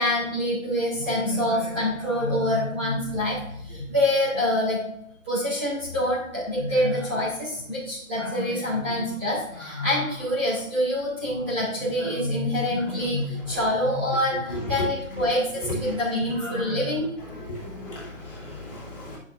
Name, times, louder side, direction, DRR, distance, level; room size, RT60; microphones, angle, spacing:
voice 1, 0.0-4.8 5.2-17.4 17.9-18.0, left 1 dB, 10° right, -12 dB, 2.7 m, -26 dB
voice 2, 14.5-14.9 15.6-16.0 17.3-19.2, left 1 dB, 40° left, -7 dB, 3.0 m, -33 dB
10.5 x 5.9 x 2.6 m, 0.75 s
hypercardioid pair, 180°, 41 cm